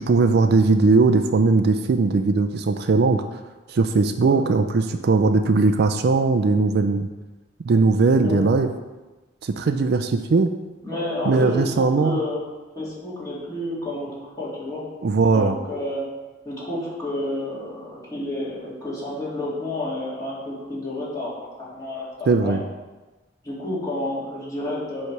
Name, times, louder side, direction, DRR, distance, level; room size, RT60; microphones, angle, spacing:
voice 1, 0.0-3.2 3.7-7.1 7.6-8.7 9.4-10.5 11.3-12.2 15.0-15.6 22.3-22.6, right 3 dB, 55° right, 8 dB, 0.4 m, -19 dB
voice 2, 10.8-12.4 12.8-14.1 14.4-14.8 15.3-16.1 16.4-21.3 21.6-22.6 23.4-25.1, left 1 dB, 20° left, -8 dB, 2.5 m, -30 dB
8.0 x 3.3 x 5.9 m, 1.2 s
head